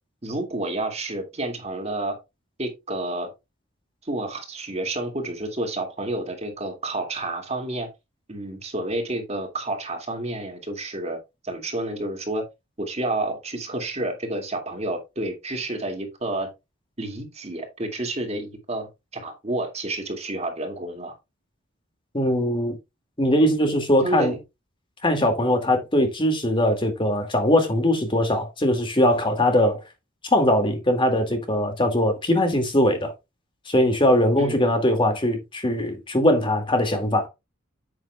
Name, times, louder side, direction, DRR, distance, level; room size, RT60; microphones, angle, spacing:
voice 1, 0.2-2.2 2.6-3.3 4.0-7.9 8.3-11.2 11.4-12.4 12.8-16.5 17.0-21.1 24.0-24.4 34.4-34.6, right 2 dB, 35° right, 2.3 m, -30 dB
voice 2, 22.1-22.8 23.2-24.4 25.0-29.8 30.3-33.1 33.7-37.3, left 1 dB, 25° left, 2.2 m, -21 dB
9.4 x 8.5 x 2.3 m
head